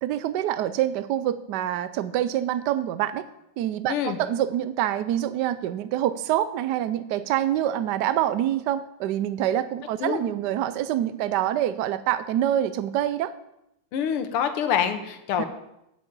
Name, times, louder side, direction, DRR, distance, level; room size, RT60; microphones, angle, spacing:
voice 1, 0.0-3.2 3.6-13.3 15.4-15.5, right 12 dB, 80° right, 14 dB, 0.9 m, -26 dB
voice 2, 3.9-4.2 10.0-10.2 13.9-15.5, left 8 dB, 85° left, 9 dB, 1.9 m, -26 dB
8.3 x 6.8 x 8.1 m, 0.84 s
omnidirectional pair, 2.4 m